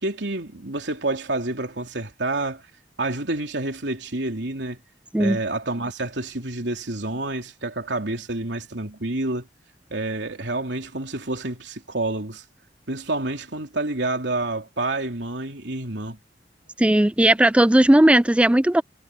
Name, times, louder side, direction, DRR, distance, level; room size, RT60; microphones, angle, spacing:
voice 1, 0.0-2.6 3.0-4.8 5.2-9.5 9.9-12.4 12.9-16.2, right 2 dB, 80° right, 3.3 m, -28 dB
voice 2, 16.8-18.8, right 1 dB, 5° right, 0.4 m, -16 dB
head